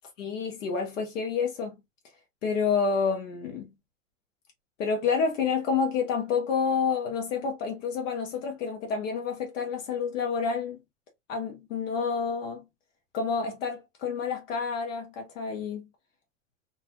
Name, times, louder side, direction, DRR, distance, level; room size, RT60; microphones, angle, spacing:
voice 1, 0.2-1.7 2.4-3.7 4.8-10.8 11.3-12.6 13.1-15.8, left 5 dB, 75° left, 1.1 m, -29 dB
2.6 x 2.2 x 2.8 m
hypercardioid pair, 105°, 38 cm